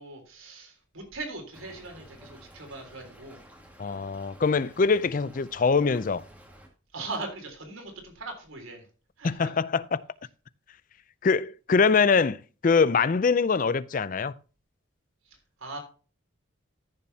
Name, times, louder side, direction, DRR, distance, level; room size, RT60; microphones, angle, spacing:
voice 1, 0.0-3.4 6.9-8.9 9.2-9.5 15.3-15.8, right 3 dB, 80° right, 3.6 m, -40 dB
Stream / Trickle dribble, 1.5-6.7, equal, 5° right, 1.8 m, -52 dB
voice 2, 3.8-6.2 9.2-10.0 11.2-14.3, left 5 dB, 40° left, 0.4 m, -23 dB
14.0 x 7.1 x 2.8 m
head